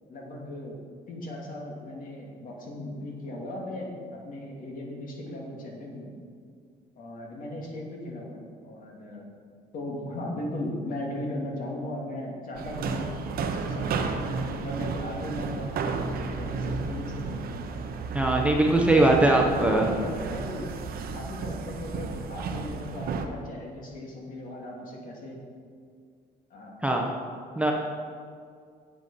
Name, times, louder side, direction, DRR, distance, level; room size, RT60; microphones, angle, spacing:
voice 1, 0.1-0.8 1.1-6.1 7.0-9.3 9.7-14.3 14.6-15.7 16.1-17.5 19.0-19.3 19.7-20.7 21.1-25.4 26.5-26.8, left 1 dB, 55° left, -1 dB, 2.3 m, -37 dB
sound 1, 12.6-23.3, right 4 dB, 60° right, 0.9 m, -32 dB
voice 2, 18.1-19.9 26.8-27.0 27.6-27.7, right 2 dB, 5° right, 0 dB, 1.0 m, -21 dB
8.1 x 7.6 x 5.6 m, 2.2 s
cardioid pair, 110°, 17 cm